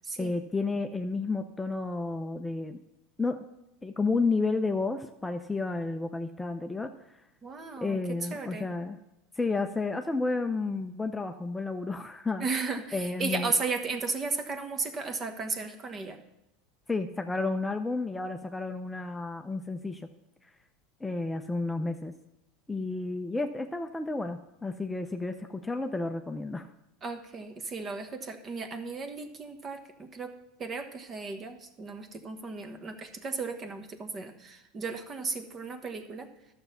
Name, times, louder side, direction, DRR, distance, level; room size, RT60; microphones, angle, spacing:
voice 1, 0.2-2.8 3.2-3.4 3.8-6.9 7.8-9.0 9.4-12.5 12.9-13.5 16.9-20.1 21.0-22.1 22.7-26.7, left 3 dB, 10° left, 6 dB, 0.6 m, -31 dB
voice 2, 7.4-8.7 12.4-16.2 27.0-30.3 30.6-36.3, right 4 dB, 30° right, 7 dB, 1.3 m, -35 dB
11.5 x 6.9 x 5.6 m, 0.90 s
supercardioid pair, 110°, 0 cm